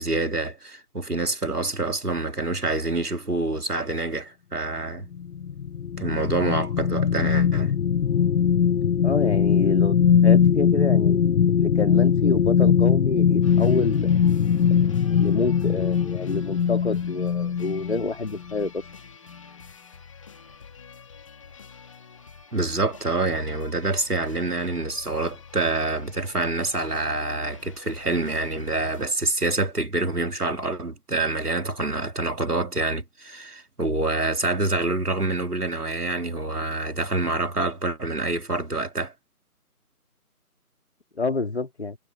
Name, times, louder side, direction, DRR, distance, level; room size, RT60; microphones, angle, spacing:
voice 1, 0.0-5.1 6.0-7.7 22.5-39.1, right 2 dB, 75° right, 2.6 m, -26 dB
sound 1, 5.1-18.1 18.5-18.7, left 7 dB, 70° left, 0.5 m, -21 dB
voice 2, 9.0-9.9 10.2-14.2 15.1-18.8 41.2-42.0, left 3 dB, 45° left, 2.9 m, -28 dB
sound 2, 13.4-29.1, left 5 dB, 20° left, 2.3 m, -47 dB
figure-of-eight pair, 160°, 46 cm